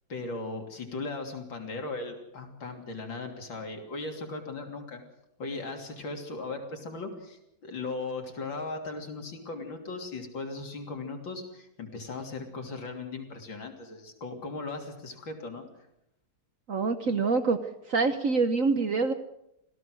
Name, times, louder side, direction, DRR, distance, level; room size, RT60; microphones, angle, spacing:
voice 1, 0.1-5.0 5.4-15.7, left 3 dB, 70° left, 3 dB, 3.9 m, -38 dB
voice 2, 16.7-17.6 17.9-19.1, right 4 dB, 50° right, 9 dB, 1.2 m, -25 dB
26.0 x 17.0 x 6.3 m, 0.83 s
omnidirectional pair, 2.1 m